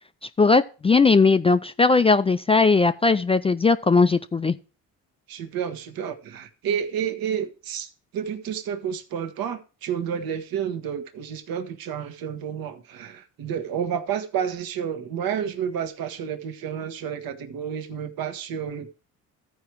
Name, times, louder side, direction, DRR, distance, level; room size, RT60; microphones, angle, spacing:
voice 1, 0.4-4.6, left 4 dB, 15° left, 0.3 m, -18 dB
voice 2, 5.3-18.9, right 8 dB, 65° right, 1.2 m, -30 dB
13.5 x 4.8 x 4.5 m
supercardioid pair, 70°, 39 cm